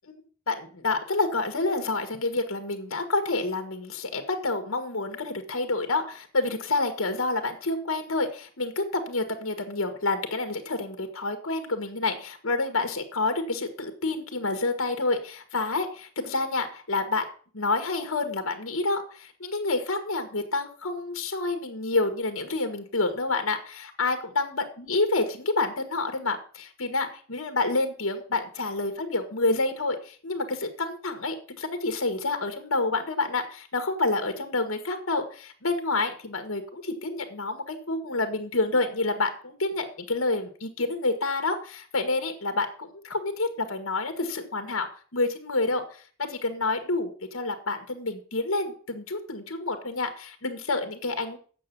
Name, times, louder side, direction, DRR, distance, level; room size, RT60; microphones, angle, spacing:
voice 1, 0.5-17.2 17.5-44.9 45.1-51.4, left 3 dB, 80° left, 7 dB, 1.6 m, -28 dB
8.6 x 7.0 x 6.9 m, 0.43 s
head